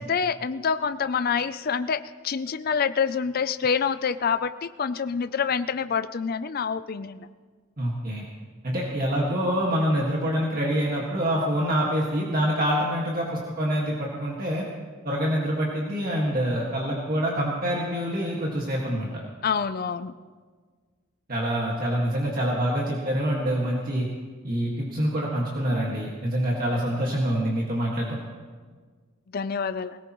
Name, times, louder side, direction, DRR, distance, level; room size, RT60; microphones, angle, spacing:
voice 1, 0.0-7.3 19.4-20.1 29.3-30.0, left 6 dB, 45° left, 12 dB, 0.4 m, -27 dB
voice 2, 7.8-8.3 8.6-14.6 15.0-19.1 21.3-24.1 24.4-28.2, equal, 45° right, -3 dB, 1.8 m, -26 dB
20.5 x 18.5 x 3.1 m, 1.5 s
head